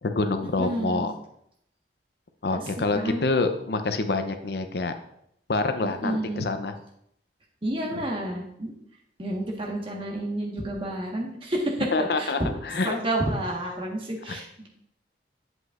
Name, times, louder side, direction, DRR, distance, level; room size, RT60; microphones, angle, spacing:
voice 1, 0.0-1.1 2.4-4.9 5.5-6.7 7.9-8.0 11.9-13.0 14.3-14.4, left 3 dB, 65° left, 8 dB, 0.6 m, -26 dB
voice 2, 0.6-1.1 2.5-2.6 2.9-3.2 5.8-6.4 7.6-8.7 9.2-11.9 12.2-12.5 12.8-14.7, right 1 dB, 30° right, -1 dB, 1.3 m, -30 dB
7.9 x 7.8 x 2.5 m, 0.73 s
head